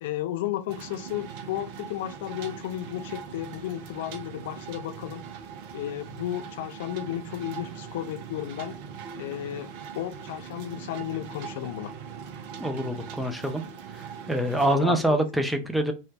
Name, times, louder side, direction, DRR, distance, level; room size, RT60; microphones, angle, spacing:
voice 1, 0.0-5.2 5.7-8.7 9.2-9.7 10.0-11.9 14.7-15.4, left 12 dB, 55° left, 0.4 m, -33 dB
sound 1, 0.7-14.8, right 7 dB, 45° right, 0.6 m, -41 dB
voice 2, 12.6-13.6 14.3-15.9, right 1 dB, ahead, 0.5 m, -25 dB
3.1 x 2.3 x 3.2 m
figure-of-eight pair, 90°, 0 cm